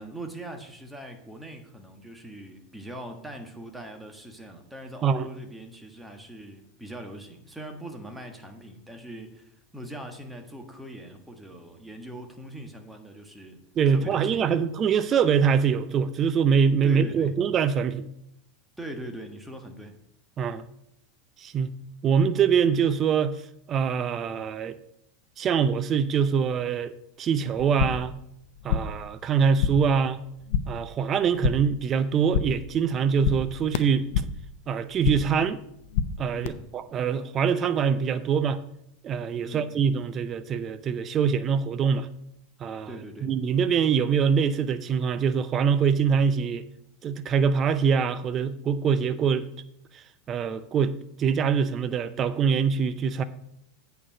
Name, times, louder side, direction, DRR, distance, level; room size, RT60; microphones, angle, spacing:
voice 1, 0.0-13.6 13.9-14.6 16.8-17.3 18.8-20.0 36.3-36.7 39.4-39.7 42.9-43.3, right 1 dB, 5° right, 4 dB, 1.5 m, -41 dB
voice 2, 13.8-18.1 20.4-20.7 21.4-21.7 22.0-23.4 23.7-24.8 25.4-26.9 27.2-28.1 28.6-30.2 30.7-34.1 34.7-35.6 36.2-38.6 39.0-42.1 42.6-42.9 43.2-46.7 47.0-49.5 49.9-53.2, right 6 dB, 35° right, 13 dB, 0.5 m, -24 dB
sound 1, 27.6-28.2 28.4-29.1 29.3-30.0 30.2-30.8 31.1-31.8 32.1-32.7 33.0-34.5 34.8-35.4 35.7-36.5, left 7 dB, 65° left, 0.6 m, -29 dB
8.5 x 4.6 x 6.5 m, 0.76 s
hypercardioid pair, 90°, 0 cm